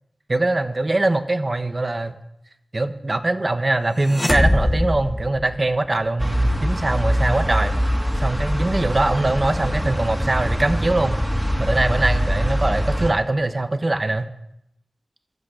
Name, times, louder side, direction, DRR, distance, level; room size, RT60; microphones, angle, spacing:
voice 1, 0.3-2.2 2.7-7.7 8.2-11.2 11.6-14.3, right 2 dB, 40° right, 9 dB, 1.2 m, -22 dB
sound 1, 4.0-6.1, left 1 dB, 15° left, 1.2 m, -21 dB
sound 2, 6.2-13.1, equal, 5° right, 2.5 m, -23 dB
16.0 x 12.5 x 5.0 m, 0.81 s
wide cardioid pair, 65°, 0 cm